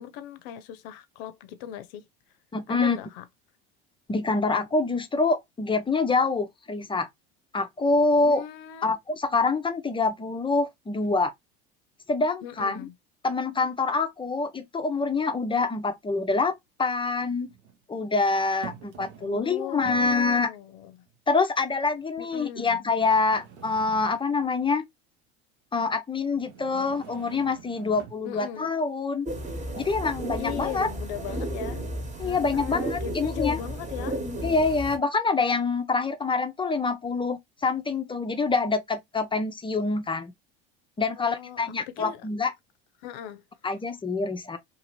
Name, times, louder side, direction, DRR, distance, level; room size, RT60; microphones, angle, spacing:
voice 1, 0.0-2.0 2.7-3.2 8.2-9.0 12.4-12.9 19.2-21.0 22.2-22.8 28.2-28.7 30.4-31.8 32.2-34.2 41.2-42.2 43.0-43.4, left 11 dB, 75° left, 0.6 m, -38 dB
voice 2, 2.5-3.0 4.1-7.1 7.5-8.4 8.8-11.3 12.1-12.9 13.2-17.5 17.9-20.5 21.3-24.9 25.7-29.3 29.8-30.9 32.2-33.6 34.4-40.3 41.0-42.5 43.6-44.6, left 3 dB, 15° left, 0.5 m, -26 dB
sound 1, 15.6-15.7 17.1-17.8 18.6-19.4 19.7-20.3 21.1-21.2 21.9-22.0 23.0-24.5 26.3-28.3, right 7 dB, 90° right, 0.9 m, -45 dB
sound 2, 29.3-35.0, right 1 dB, 25° right, 1.1 m, -33 dB
2.7 x 2.5 x 3.0 m
hypercardioid pair, 80°, 31 cm